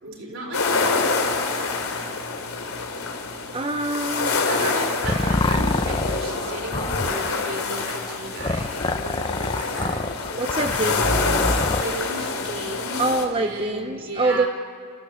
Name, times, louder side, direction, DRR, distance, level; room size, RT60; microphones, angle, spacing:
voice 1, 0.0-2.0 4.3-10.0 10.5-10.7 11.7-13.0 13.4-14.5, right 2 dB, 60° right, 2 dB, 4.1 m, -35 dB
sound 1, 0.5-13.2, left 4 dB, 80° left, 2.8 m, -26 dB
voice 2, 3.5-4.8 5.1-5.4 10.3-11.4 13.0-14.5, right 2 dB, 25° right, 7 dB, 0.6 m, -26 dB
sound 2, 4.6-11.8, left 2 dB, 20° left, 0.6 m, -27 dB
29.0 x 15.5 x 8.1 m, 2.2 s
head